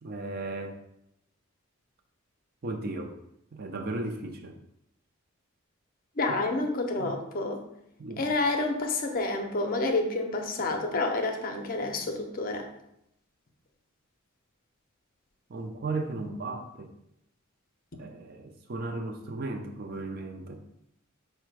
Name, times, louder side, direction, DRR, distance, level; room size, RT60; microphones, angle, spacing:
voice 1, 0.0-0.8 2.6-3.2 3.5-4.6 7.0-7.1 8.0-8.3 15.5-16.9 18.0-20.6, right 2 dB, 50° right, 4 dB, 0.5 m, -35 dB
voice 2, 6.2-7.6 8.2-12.7, left 2 dB, 45° left, 4 dB, 0.5 m, -29 dB
4.8 x 2.2 x 4.6 m, 0.80 s
head